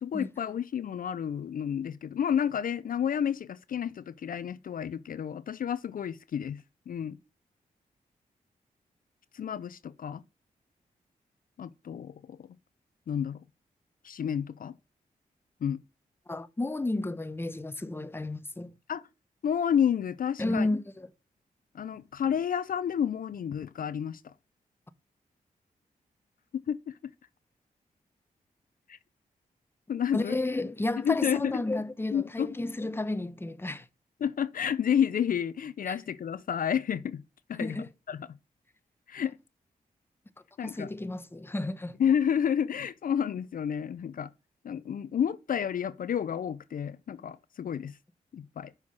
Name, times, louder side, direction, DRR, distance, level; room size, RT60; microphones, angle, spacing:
voice 1, 0.0-6.6 6.9-7.2 9.3-10.2 11.6-12.5 13.1-13.4 14.0-14.7 15.6-15.8 18.9-19.0 19.4-20.7 21.7-24.3 26.7-26.9 28.9-29.0 29.9-30.4 31.0-31.5 32.1-32.5 34.2-37.2 37.5-37.8 38.1-38.2 39.1-39.4 40.6-40.9 42.0-44.3 44.6-48.0 48.3-48.7, left 8 dB, 65° left, 0.5 m, -30 dB
voice 2, 16.3-18.7 20.4-21.1 30.1-33.9 35.9-36.0 37.6-37.9 40.6-42.0, left 2 dB, 15° left, 0.8 m, -32 dB
6.1 x 5.7 x 6.3 m
cardioid pair, 55°, 15 cm